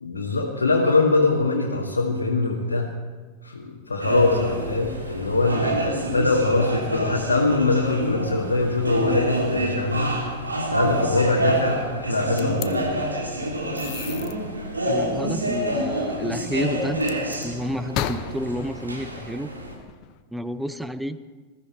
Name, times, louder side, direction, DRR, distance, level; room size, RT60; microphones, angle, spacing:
voice 1, 0.0-2.9 3.4-10.1 10.7-12.9, left 3 dB, 75° left, -2 dB, 1.9 m, -22 dB
sound 1, 4.0-19.7, right 1 dB, 80° right, 3.1 m, -28 dB
sound 2, 12.4-12.7 13.8-14.3 17.0-17.5 17.9-20.2, left 10 dB, 40° left, 0.9 m, -34 dB
voice 2, 14.9-17.0 17.4-19.5 20.3-21.2, equal, 5° right, 13 dB, 0.7 m, -30 dB
20.5 x 13.5 x 4.5 m, 1.4 s
figure-of-eight pair, 90°, 0 cm